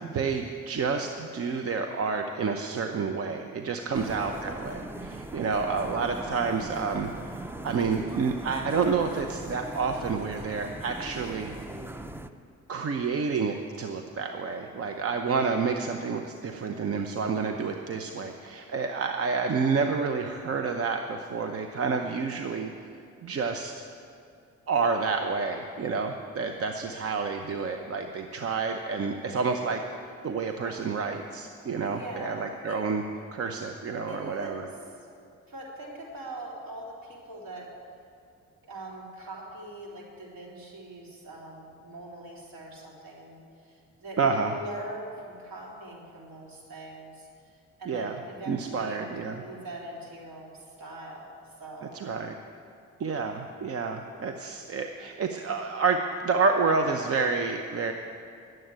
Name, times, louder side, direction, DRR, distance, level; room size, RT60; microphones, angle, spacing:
voice 1, 0.0-11.5 12.7-22.7 23.2-23.7 24.7-29.8 30.2-33.0 33.3-34.6 44.2-44.5 47.9-48.1 48.5-49.4 51.9-52.3 53.0-57.9, right 5 dB, 50° right, 5 dB, 0.8 m, -29 dB
sound 1, 3.9-12.3, right 1 dB, 10° right, 0.5 m, -40 dB
voice 2, 3.9-4.2 5.3-5.7 24.7-24.8 30.6-30.8 31.8-32.8 34.0-35.1 35.5-37.7 38.6-52.0, right 2 dB, 70° right, -3 dB, 3.5 m, -42 dB
11.0 x 7.8 x 9.1 m, 2.5 s
cardioid pair, 90°, 30 cm